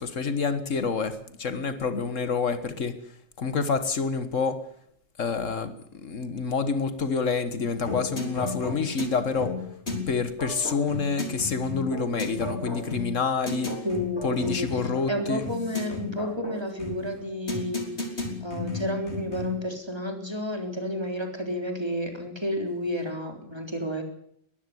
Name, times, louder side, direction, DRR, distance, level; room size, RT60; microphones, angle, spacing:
voice 1, 0.0-4.7 5.2-9.7 10.1-13.9 14.2-15.5, left 4 dB, 75° left, 1.8 m, -28 dB
sound 1, 7.8-19.7, left 3 dB, 55° left, 3.9 m, -34 dB
voice 2, 13.8-14.7 15.1-17.9 18.4-24.0, equal, 20° right, 3.8 m, -31 dB
21.5 x 14.5 x 9.7 m
omnidirectional pair, 1.3 m